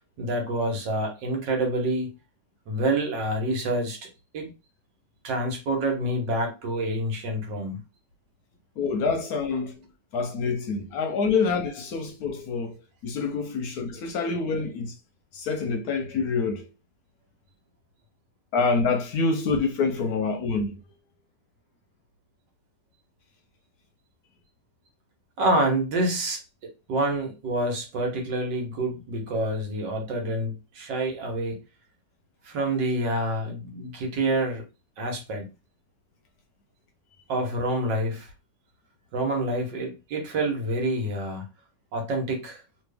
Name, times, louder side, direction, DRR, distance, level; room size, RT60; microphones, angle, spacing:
voice 1, 0.2-2.1 2.7-4.0 4.3-4.5 5.2-7.8 25.4-31.6 32.4-34.6 35.0-35.5 37.3-38.3 39.1-41.4 41.9-42.6, right 1 dB, 80° right, 1.8 m, -27 dB
voice 2, 8.8-9.8 10.1-14.9 15.3-16.7 18.5-20.8, left 4 dB, 65° left, 1.0 m, -26 dB
3.1 x 3.0 x 3.3 m
omnidirectional pair, 1.9 m